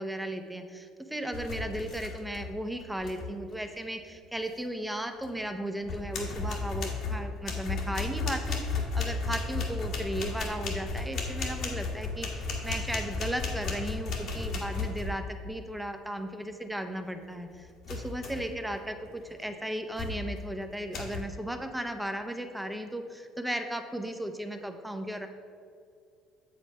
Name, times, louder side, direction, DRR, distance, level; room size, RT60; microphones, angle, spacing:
voice 1, 0.0-25.3, right 1 dB, 5° right, 6 dB, 0.8 m, -36 dB
sound 1, 1.3-2.5 2.8-3.3 5.2-5.3 5.8-15.4 17.8-18.6 19.0-19.3 20.0-20.4 20.9-21.2, left 3 dB, 65° left, 1.5 m, -34 dB
7.3 x 5.3 x 5.4 m, 2.3 s
supercardioid pair, 85°, 0 cm